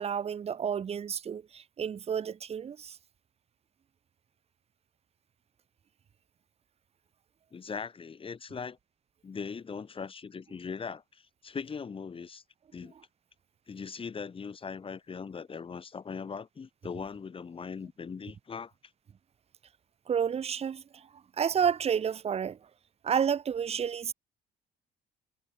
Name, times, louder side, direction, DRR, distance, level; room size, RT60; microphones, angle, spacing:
voice 1, 0.0-3.0 20.1-22.7 23.0-24.1, right 7 dB, 35° right, 1.3 m, -30 dB
voice 2, 7.5-8.8 9.2-12.4 12.7-12.9 13.7-18.7, left 5 dB, 30° left, 6.2 m, -40 dB
cardioid pair, 110°, 17 cm